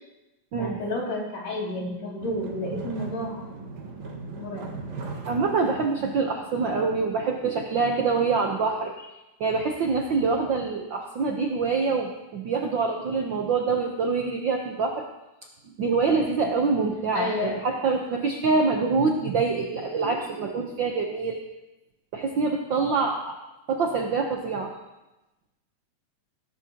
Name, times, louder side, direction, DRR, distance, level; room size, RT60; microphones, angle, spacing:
voice 1, 0.6-3.5 4.3-4.8 17.1-17.6, left 1 dB, 60° left, -3 dB, 3.9 m, -31 dB
sound 1, 2.2-7.7, right 4 dB, 65° right, 2.8 m, -39 dB
voice 2, 5.2-9.1 9.4-15.0 15.8-21.4 22.1-23.4 23.7-24.7, right 4 dB, 90° right, 2 dB, 1.0 m, -25 dB
19.0 x 11.5 x 2.9 m, 1.0 s
omnidirectional pair, 3.5 m